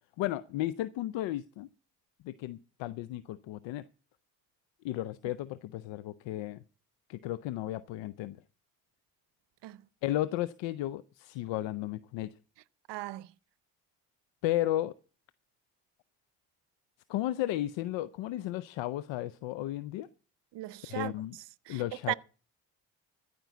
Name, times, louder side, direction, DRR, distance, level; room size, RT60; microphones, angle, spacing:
voice 1, 0.2-1.7 2.2-3.8 4.8-6.6 7.1-8.4 10.0-12.3 14.4-14.9 17.1-20.1 20.9-21.3 21.7-22.1, left 14 dB, 75° left, 0.6 m, -34 dB
voice 2, 12.9-13.3 20.5-22.1, right 17 dB, 65° right, 0.7 m, -38 dB
14.5 x 5.4 x 8.1 m
supercardioid pair, 55°, 46 cm